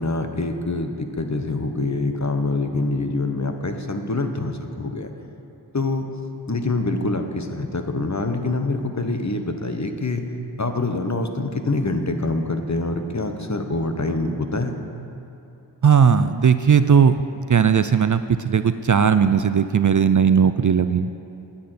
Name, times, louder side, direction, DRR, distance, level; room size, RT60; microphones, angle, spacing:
voice 1, 0.0-5.1 5.7-6.1 6.5-10.2 10.6-14.8, left 2 dB, 40° left, 6 dB, 1.1 m, -25 dB
voice 2, 15.8-17.1 17.5-21.1, right 7 dB, 45° right, 11 dB, 0.4 m, -17 dB
10.0 x 9.0 x 8.0 m, 2.8 s
wide cardioid pair, 55°, 44 cm